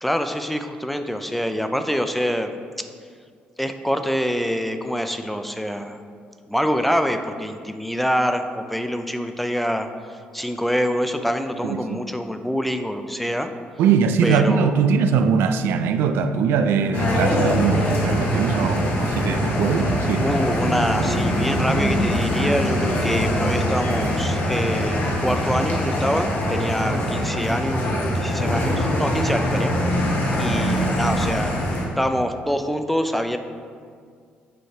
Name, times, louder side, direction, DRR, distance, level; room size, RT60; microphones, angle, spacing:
voice 1, 0.0-2.5 2.8-2.9 3.6-6.0 6.5-13.5 14.2-14.8 20.2-30.0 30.4-31.6 32.0-33.4, equal, 5° left, 7 dB, 0.4 m, -25 dB
voice 2, 11.6-12.0 13.8-20.4 20.7-20.9, right 6 dB, 80° right, 9 dB, 0.3 m, -21 dB
sound 1, 16.9-31.8, equal, 65° left, 1.2 m, -23 dB
7.9 x 3.2 x 4.4 m, 2.1 s
cardioid pair, 105°, 4 cm